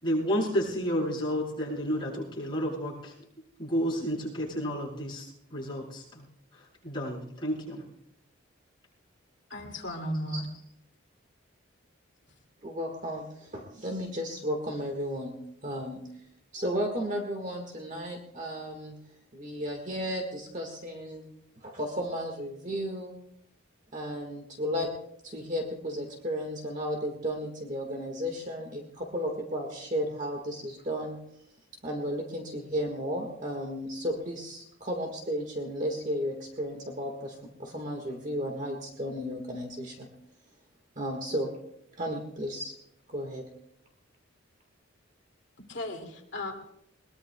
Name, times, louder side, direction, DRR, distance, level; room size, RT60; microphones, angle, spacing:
voice 1, 0.0-3.1 3.6-6.3 6.8-7.8, equal, 25° left, -6 dB, 7.3 m, -31 dB
voice 2, 9.5-10.4 45.7-46.7, left 1 dB, 55° left, 2 dB, 2.4 m, -35 dB
voice 3, 12.6-15.4 15.6-16.0 16.5-18.9 19.3-21.2 21.6-23.1 23.9-24.9 25.2-31.2 31.8-40.1 40.9-41.5 42.0-42.7 43.1-43.5, equal, 35° right, 2 dB, 1.7 m, -34 dB
22.0 x 21.0 x 2.3 m, 0.76 s
head